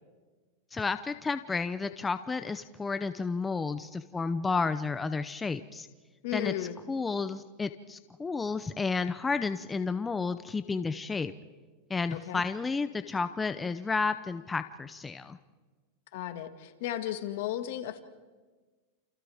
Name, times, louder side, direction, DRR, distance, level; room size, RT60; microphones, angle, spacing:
voice 1, 0.7-5.9 6.3-11.3 11.9-15.4, left 4 dB, 15° left, 10 dB, 0.6 m, -32 dB
voice 2, 6.2-6.8 12.1-12.4 16.1-18.0, left 12 dB, 65° left, 7 dB, 1.9 m, -34 dB
29.5 x 28.5 x 3.6 m, 1.3 s
supercardioid pair, 135°, 0 cm